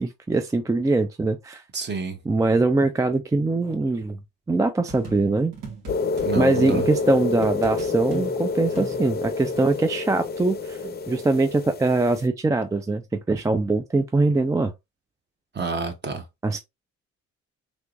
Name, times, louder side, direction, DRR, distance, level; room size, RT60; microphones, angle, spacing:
voice 1, 0.0-1.6 2.3-4.2 4.5-5.5 6.3-14.7 16.4-16.6, right 3 dB, 10° right, 0.3 m, -22 dB
voice 2, 1.7-2.2 6.2-6.8 15.5-16.2, right 4 dB, 35° right, 1.0 m, -29 dB
sound 1, 4.9-6.3 6.7-9.8, right 2 dB, 85° right, 1.8 m, -39 dB
sound 2, 5.9-12.2, left 4 dB, 35° left, 0.6 m, -28 dB
3.5 x 3.0 x 2.5 m
cardioid pair, 90°, 30 cm